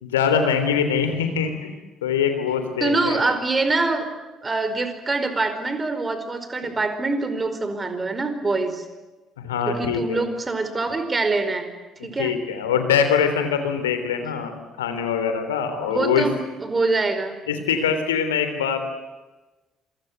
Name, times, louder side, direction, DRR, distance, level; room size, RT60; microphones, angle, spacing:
voice 1, 0.0-1.7 2.0-3.2 6.6-6.8 9.4-10.3 12.0-16.3 17.5-18.8, left 7 dB, 75° left, 8 dB, 3.4 m, -23 dB
voice 2, 2.8-4.1 4.4-8.8 9.7-11.7 12.0-12.4 15.9-17.4, right 3 dB, 25° right, 9 dB, 4.8 m, -24 dB
27.5 x 25.0 x 8.1 m, 1.1 s
figure-of-eight pair, 50°, 0 cm